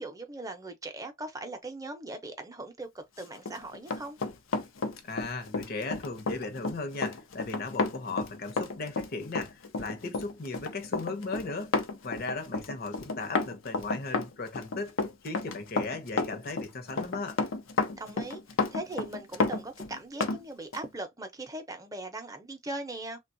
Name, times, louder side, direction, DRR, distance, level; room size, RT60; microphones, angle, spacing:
voice 1, 0.0-4.2 17.9-18.4 18.7-23.2, right 2 dB, 15° right, 0.6 m, -39 dB
Run, 3.3-20.4 20.7-20.9, left 3 dB, 85° left, 0.6 m, -31 dB
voice 2, 5.0-11.7 12.0-15.0 15.2-17.4, left 3 dB, 50° left, 0.8 m, -37 dB
3.3 x 2.3 x 2.6 m
head